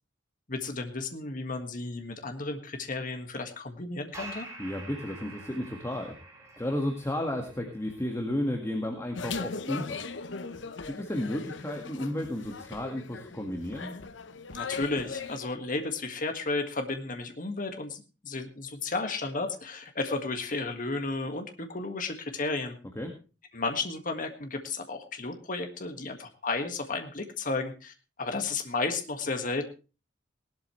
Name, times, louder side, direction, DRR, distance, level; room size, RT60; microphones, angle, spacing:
voice 1, 0.5-4.5 14.5-22.8 23.5-27.9 28.2-29.7, left 3 dB, 45° left, 6 dB, 1.8 m, -33 dB
sound 1, 4.1-11.1, right 2 dB, 15° right, 4.4 m, -49 dB
voice 2, 4.6-6.2 6.6-10.0 10.9-14.0 23.0-23.1, left 1 dB, 15° left, 3 dB, 1.7 m, -33 dB
sound 2, 9.2-15.4, left 4 dB, 80° left, 1.0 m, -39 dB
18.5 x 12.5 x 3.2 m, 0.33 s
head